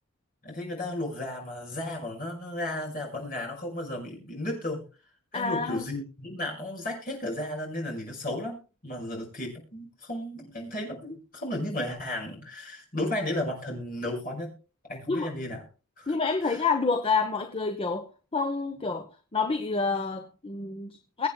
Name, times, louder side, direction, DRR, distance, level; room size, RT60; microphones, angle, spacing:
voice 1, 0.4-4.8 5.3-14.5 14.9-15.6 16.0-16.1 16.4-16.6, left 1 dB, 40° left, 5.6 m, -34 dB
voice 2, 5.3-5.8 15.1-15.3 16.1-21.3, left 4 dB, 25° left, 0.8 m, -28 dB
23.0 x 8.3 x 2.2 m
head